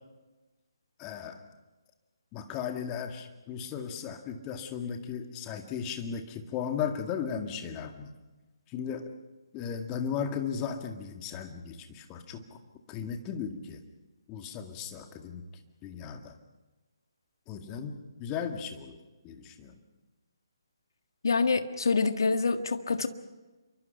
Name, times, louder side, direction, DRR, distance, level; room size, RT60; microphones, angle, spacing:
voice 1, 1.0-1.4 2.3-8.1 8.7-9.1 9.5-12.6 12.9-13.8 14.3-15.4 15.8-16.4 17.5-19.0 19.2-19.8, left 7 dB, 20° left, 5 dB, 2.0 m, -36 dB
voice 2, 21.2-23.1, left 4 dB, 60° left, 8 dB, 1.7 m, -26 dB
28.0 x 24.5 x 5.7 m, 1.2 s
figure-of-eight pair, 140°, 2 cm